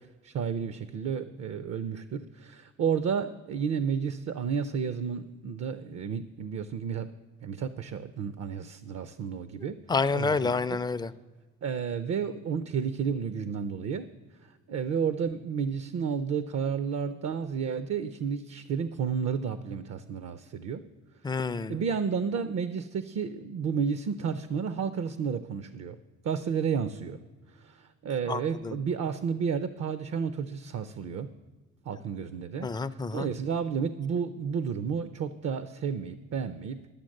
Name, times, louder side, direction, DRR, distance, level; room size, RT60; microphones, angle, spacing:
voice 1, 0.2-7.1 7.4-9.8 10.1-10.5 11.6-14.1 14.7-20.9 21.7-26.0 26.2-27.2 27.6-31.3 31.9-32.7 33.1-36.8, right 6 dB, 55° right, 12 dB, 0.5 m, -31 dB
voice 2, 9.9-11.1 21.2-21.8 28.3-28.8 32.6-33.3, left 4 dB, 15° left, 13 dB, 0.3 m, -29 dB
12.0 x 7.1 x 6.4 m, 1.3 s
cardioid pair, 90°, 30 cm